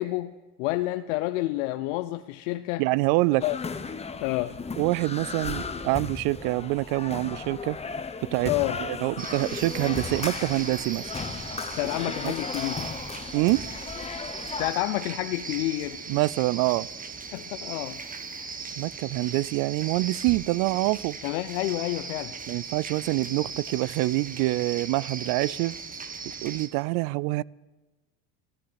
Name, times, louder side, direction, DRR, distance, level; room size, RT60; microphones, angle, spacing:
voice 1, 0.0-2.9 3.4-3.6 4.2-4.6 8.4-8.8 11.8-12.9 14.6-16.0 17.3-18.0 18.3-18.6 21.2-22.3, left 17 dB, 85° left, 0.7 m, -29 dB
voice 2, 2.8-3.4 4.8-7.8 8.3-8.5 8.9-11.1 12.2-12.3 13.3-13.6 16.1-16.9 18.8-21.2 22.5-25.8 26.4-27.4, right 21 dB, 70° right, 0.5 m, -26 dB
sound 1, 3.4-14.7, left 5 dB, 15° left, 0.9 m, -36 dB
sound 2, 9.2-26.7, right 5 dB, 25° right, 1.3 m, -38 dB
14.0 x 11.5 x 8.8 m
supercardioid pair, 95°, 36 cm